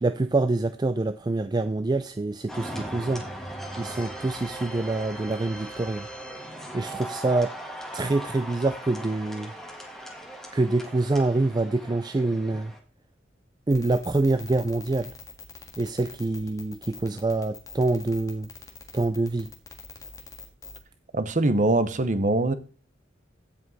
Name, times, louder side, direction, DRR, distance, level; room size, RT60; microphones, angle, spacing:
voice 1, 0.0-3.2 3.8-6.1 6.7-7.5 7.9-9.5 10.5-12.7 13.7-15.1 15.8-18.5 18.9-19.5, right 2 dB, 20° right, 0.4 m, -26 dB
sound 1, 2.5-12.8, right 1 dB, ahead, 1.4 m, -39 dB
sound 2, 13.7-20.8, left 4 dB, 15° left, 1.7 m, -43 dB
voice 2, 21.1-22.5, right 2 dB, 40° right, 0.9 m, -23 dB
15.5 x 5.3 x 4.1 m
head